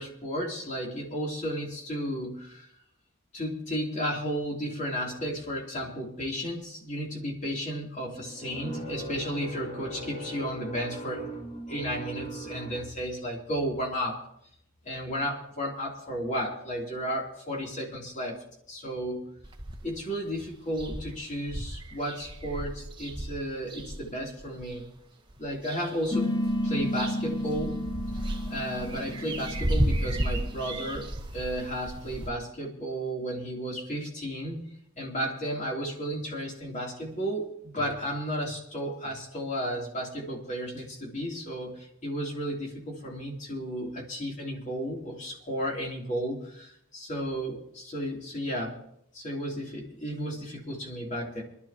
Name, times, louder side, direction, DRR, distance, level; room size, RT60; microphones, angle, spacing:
voice 1, 0.0-2.7 3.3-14.2 14.8-18.4 18.7-19.3 19.8-24.9 25.4-26.3 26.6-27.8 28.5-31.1 31.3-34.6 35.0-48.7 49.1-51.4, equal, 35° left, -2 dB, 3.1 m, -33 dB
sound 1, 19.4-20.0 20.4-20.5 20.7-24.8 25.3-26.1 26.4-32.3, right 1 dB, 20° right, 1.2 m, -33 dB
sound 2, 26.1-31.1, left 1 dB, 20° left, 0.7 m, -32 dB
23.5 x 12.0 x 2.9 m, 0.74 s
head